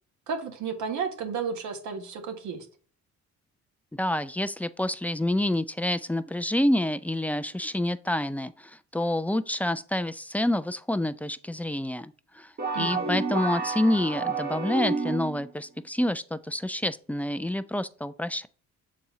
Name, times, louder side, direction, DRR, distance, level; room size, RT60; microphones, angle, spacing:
voice 1, 0.3-2.6 12.7-13.1, right 5 dB, 75° right, 1.6 m, -33 dB
voice 2, 3.9-12.5 12.8-18.5, left 1 dB, 5° left, 0.3 m, -28 dB
sound 1, 12.6-15.5, right 3 dB, 30° right, 1.0 m, -30 dB
6.8 x 4.2 x 3.7 m
cardioid pair, 90°, 30 cm